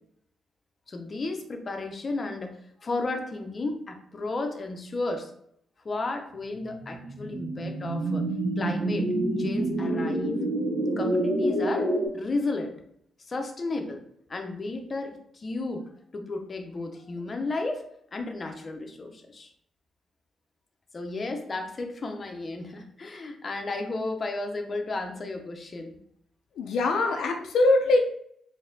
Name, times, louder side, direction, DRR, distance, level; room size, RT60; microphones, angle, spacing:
voice 1, 0.9-5.3 5.8-8.2 8.6-9.1 9.4-10.3 11.0-12.8 13.3-14.0 14.3-17.8 18.1-19.5 20.9-26.0, left 2 dB, 35° left, 4 dB, 0.6 m, -33 dB
sound 1, 6.5-12.1, right 1 dB, 75° right, 1.3 m, -28 dB
voice 2, 26.6-28.0, left 2 dB, 85° left, 3 dB, 0.4 m, -22 dB
4.0 x 2.7 x 2.6 m, 0.68 s
cardioid pair, 95°, 0 cm